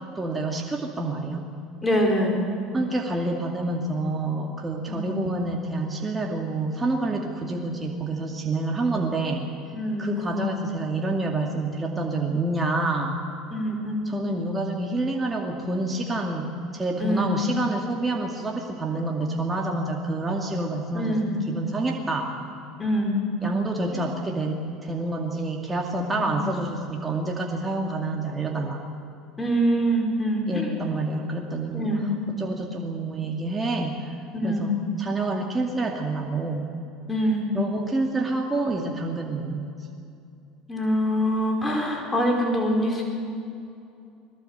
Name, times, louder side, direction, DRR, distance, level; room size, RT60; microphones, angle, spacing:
voice 1, 0.2-1.4 2.7-9.4 10.0-13.2 14.1-21.2 21.5-22.3 23.4-28.8 30.5-32.0 32.3-34.2 34.4-36.7 37.5-39.7, right 2 dB, 20° right, 1 dB, 2.3 m, -28 dB
voice 2, 1.8-2.5 4.9-5.2 7.2-7.3 9.7-10.4 13.5-14.1 17.0-17.3 20.9-21.4 22.8-23.2 23.9-24.0 26.2-26.4 29.4-30.7 31.7-32.1 34.3-34.7 37.1-37.5 40.7-43.0, equal, 20° left, 1 dB, 4.4 m, -25 dB
21.0 x 17.5 x 8.1 m, 2.6 s
hypercardioid pair, 85°, 0 cm